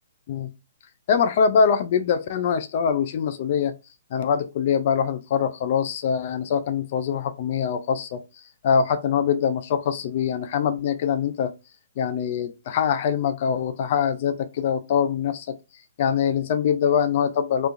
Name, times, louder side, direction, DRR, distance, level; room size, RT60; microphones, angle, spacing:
voice 1, 1.1-3.7 4.1-8.2 8.6-11.5 12.0-15.6 16.0-17.7, left 7 dB, 45° left, 0.5 m, -23 dB
3.3 x 3.1 x 2.5 m
hypercardioid pair, 150°, 0 cm